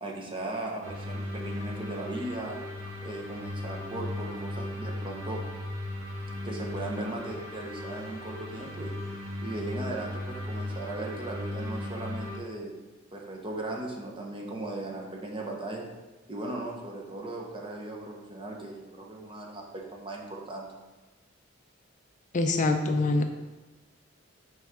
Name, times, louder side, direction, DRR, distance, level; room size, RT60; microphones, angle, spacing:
voice 1, 0.0-2.6 3.0-5.4 6.4-8.9 9.4-12.8 13.1-15.9 16.3-20.7, right 2 dB, 25° right, 0 dB, 0.9 m, -37 dB
sound 1, 0.8-12.4, left 1 dB, 80° right, 2.1 m, -37 dB
voice 2, 22.3-23.3, left 2 dB, 40° left, 6 dB, 0.4 m, -24 dB
6.0 x 4.9 x 3.6 m, 1.2 s
head